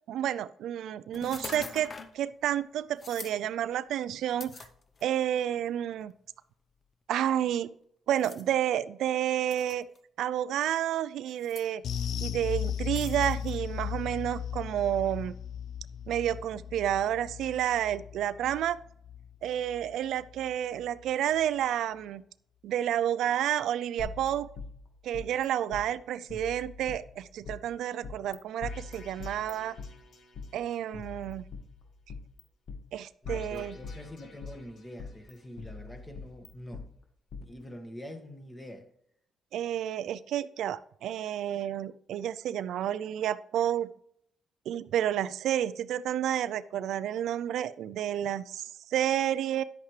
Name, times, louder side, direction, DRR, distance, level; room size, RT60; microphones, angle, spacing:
voice 1, 0.1-4.5 5.0-6.1 7.1-7.7 8.1-9.8 10.2-11.8 12.2-15.3 16.1-18.8 19.4-22.2 22.6-24.5 25.0-29.8 30.5-31.4 32.9-33.7 39.5-43.9 44.7-49.6, right 11 dB, 80° right, 0.4 m, -30 dB
sound 1, 1.1-2.2 3.0-3.4 4.4-5.2 6.0-6.1 8.2-8.4 9.5-10.0 11.3-11.7 13.0-13.6, left 4 dB, 40° left, 0.8 m, -43 dB
sound 2, 11.8-20.5 20.8-21.0 21.4-21.5, left 9 dB, 75° left, 0.5 m, -37 dB
sound 3, 24.0-25.5 25.7-25.8 26.3-27.6 28.0-28.4 28.6-30.5 30.9-32.4 32.7-32.8 33.2-34.6 35.0-36.8 37.3-37.4, left 4 dB, 60° left, 1.7 m, -42 dB
voice 2, 33.2-36.9 37.4-38.9, left 1 dB, 15° left, 1.7 m, -45 dB
10.5 x 8.0 x 3.2 m
cardioid pair, 90°, 0 cm